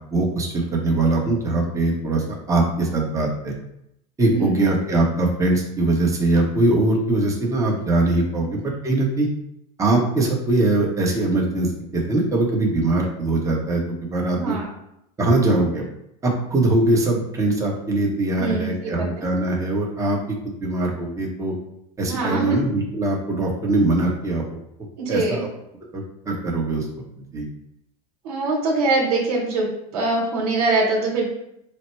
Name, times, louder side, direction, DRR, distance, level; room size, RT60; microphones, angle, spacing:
voice 1, 0.1-3.5 4.2-9.3 9.8-14.6 15.2-15.8 16.2-21.5 22.0-24.6 25.1-25.5 25.9-26.9 27.3-27.5, right 2 dB, 15° right, -1 dB, 0.9 m, -22 dB
voice 2, 4.2-4.6 14.3-14.7 18.4-19.1 22.0-22.6 25.0-25.4 28.2-31.3, right 3 dB, 85° right, -2 dB, 1.1 m, -23 dB
4.2 x 2.1 x 4.3 m, 0.80 s
supercardioid pair, 125°, 20 cm